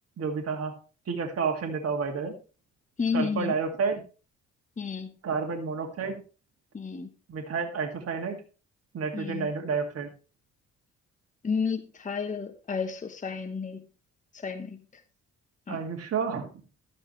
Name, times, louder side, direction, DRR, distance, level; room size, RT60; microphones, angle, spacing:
voice 1, 0.2-0.7 1.1-2.3 3.1-4.0 5.2-6.2 7.3-8.4 8.9-10.1 15.7-16.5, right 5 dB, 50° right, 3 dB, 2.3 m, -30 dB
voice 2, 3.0-3.5 4.8-5.1 6.7-7.1 9.1-9.5 11.4-13.8 14.3-14.8 15.7-15.8, left 5 dB, 25° left, 7 dB, 1.1 m, -31 dB
12.5 x 9.1 x 3.2 m, 0.33 s
cardioid pair, 90°, 30 cm